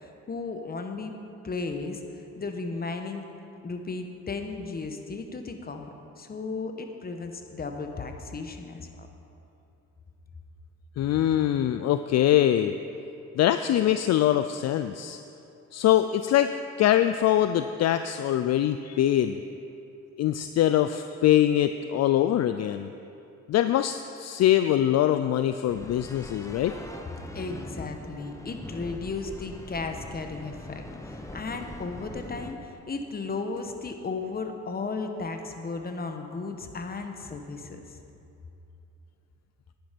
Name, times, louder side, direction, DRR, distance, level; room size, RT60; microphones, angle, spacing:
voice 1, 0.3-1.1 1.4-2.0 2.4-3.2 3.6-9.1 27.3-38.0, left 4 dB, 30° left, 5 dB, 1.1 m, -35 dB
voice 2, 11.0-12.7 13.4-15.2 15.7-16.5 16.8-19.4 20.2-22.9 23.5-26.7, left 12 dB, 60° left, 10 dB, 0.4 m, -23 dB
sound 1, 25.7-32.5, left 1 dB, 10° left, 1.0 m, -42 dB
10.5 x 10.0 x 5.2 m, 2.7 s
cardioid pair, 90°, 30 cm